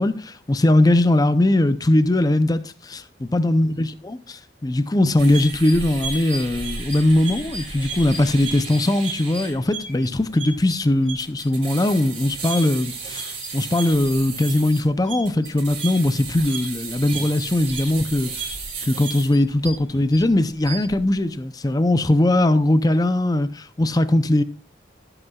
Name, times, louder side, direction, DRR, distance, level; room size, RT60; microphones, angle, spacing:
voice 1, 0.0-18.3 18.8-24.4, left 1 dB, 20° left, 0.5 m, -20 dB
sound 1, 5.2-20.2 20.5-20.9, right 4 dB, 35° right, 4.8 m, -33 dB
17.0 x 7.9 x 2.3 m
head